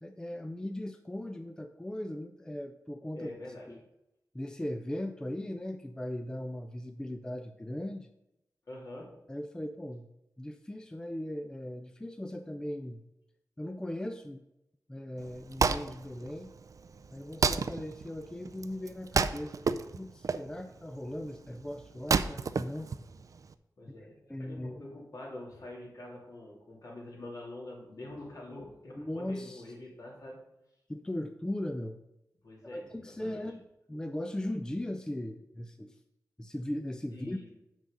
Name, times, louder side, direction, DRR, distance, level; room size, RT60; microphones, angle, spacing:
voice 1, 0.0-3.3 3.7-3.8 4.3-8.1 9.3-10.1 10.4-13.0 13.6-14.4 14.9-16.6 17.1-22.9 24.3-24.8 29.0-29.6 30.9-32.0 32.7-36.0 36.4-37.4, left 1 dB, 10° left, 7 dB, 0.4 m, -38 dB
voice 2, 3.1-3.7 8.7-9.2 23.8-30.4 32.4-33.4 37.1-37.5, left 1 dB, 55° left, -2 dB, 2.8 m, -45 dB
Wood, 15.2-23.5, right 5 dB, 55° right, 0.4 m, -32 dB
6.9 x 6.2 x 5.2 m, 0.89 s
wide cardioid pair, 110°, 7 cm